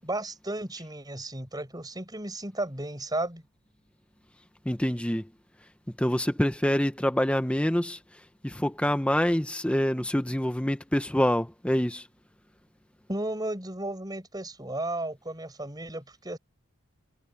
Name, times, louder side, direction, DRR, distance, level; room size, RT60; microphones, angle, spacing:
voice 1, 0.0-3.5 13.1-16.4, right 1 dB, 20° right, 7.3 m, -34 dB
voice 2, 4.7-5.2 6.0-8.0 8.4-12.0, equal, 5° left, 0.7 m, -26 dB
head